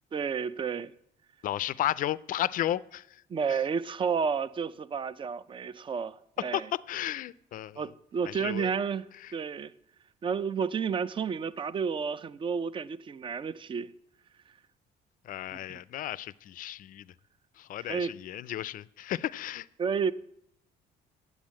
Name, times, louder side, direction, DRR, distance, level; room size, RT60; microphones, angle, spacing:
voice 1, 0.1-0.9 3.3-6.6 7.8-9.1 9.3-9.7 10.2-13.9 15.7-15.8 17.9-18.1 19.8-20.1, right 6 dB, 30° right, 0.5 m, -31 dB
voice 2, 1.4-3.2 3.5-3.6 6.4-7.9 8.3-8.7 9.2-9.3 15.2-17.1 17.6-19.7, left 12 dB, 55° left, 0.4 m, -34 dB
8.8 x 8.2 x 7.4 m
cardioid pair, 110°, 17 cm